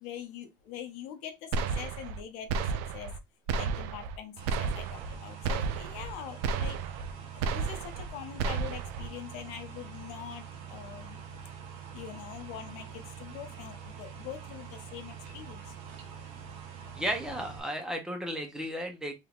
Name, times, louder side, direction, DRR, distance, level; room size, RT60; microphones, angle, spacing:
voice 1, 0.0-3.1 3.5-6.8 7.3-11.2 11.9-15.7, left 9 dB, 70° left, 0.7 m, -43 dB
sound 1, 1.5-2.2 2.5-3.2 3.5-4.2 4.5-5.2 5.4-6.1 6.4-7.1 7.4-8.1 8.4-9.1, right 5 dB, 85° right, 0.4 m, -32 dB
sound 2, 4.4-17.6, right 7 dB, 65° right, 1.0 m, -45 dB
voice 2, 16.9-19.1, equal, 5° right, 0.6 m, -34 dB
3.5 x 3.0 x 2.4 m
cardioid pair, 160°, 12 cm